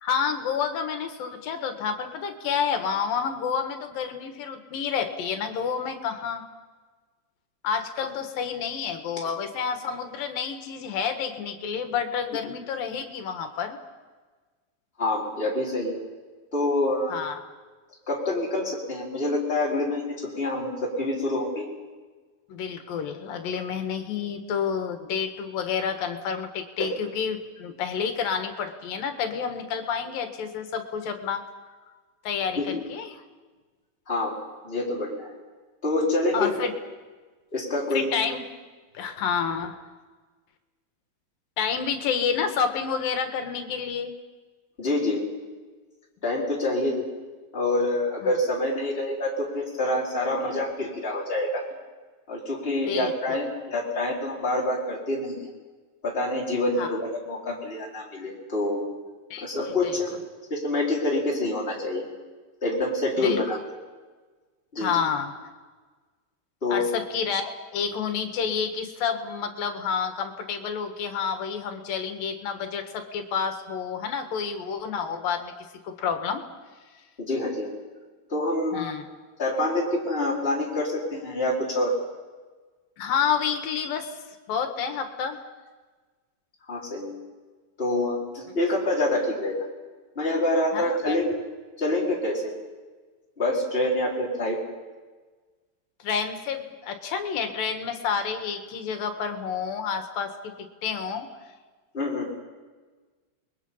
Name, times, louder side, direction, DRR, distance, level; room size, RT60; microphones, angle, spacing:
voice 1, 0.0-6.4 7.6-13.8 17.1-17.4 22.5-31.4 32.2-33.2 36.3-36.7 37.9-38.4 38.9-39.8 41.6-44.1 48.2-48.3 50.2-50.5 52.9-53.4 56.8-57.0 59.3-60.0 63.2-63.4 64.8-65.3 66.7-75.5 75.8-76.4 78.7-79.0 83.0-84.1 84.5-85.4 90.7-91.2 96.0-101.3, left 6 dB, 80° left, 6 dB, 3.3 m, -29 dB
voice 2, 15.0-16.0 16.5-17.1 18.1-21.7 26.8-26.9 32.6-32.8 34.1-34.4 34.6-35.3 35.8-36.5 37.5-38.1 44.8-45.2 46.2-47.0 47.5-51.6 52.3-55.5 56.0-58.8 59.4-60.2 60.5-62.0 62.6-63.6 64.7-65.0 66.6-66.9 77.2-77.7 78.3-78.9 79.4-81.9 86.7-87.2 87.8-89.5 90.1-91.3 91.8-92.5 93.4-94.6 101.9-102.3, left 1 dB, 15° left, -4 dB, 4.6 m, -26 dB
29.0 x 21.5 x 5.6 m, 1.4 s
omnidirectional pair, 4.0 m